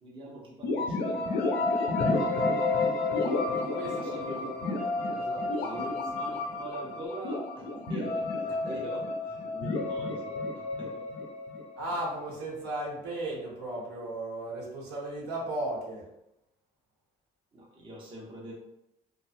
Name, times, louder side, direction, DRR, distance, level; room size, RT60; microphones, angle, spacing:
voice 1, 0.0-1.4 3.9-4.8 5.7-10.4 10.8-11.0 17.5-18.5, right 1 dB, 30° right, -3 dB, 0.6 m, -43 dB
sound 1, 0.6-12.3, left 3 dB, 75° left, 0.6 m, -30 dB
voice 2, 3.6-4.4 5.1-6.4 8.5-8.8 11.8-16.1, right 1 dB, 80° right, -5 dB, 1.0 m, -36 dB
2.6 x 2.2 x 2.5 m, 0.84 s
cardioid pair, 110°, 17 cm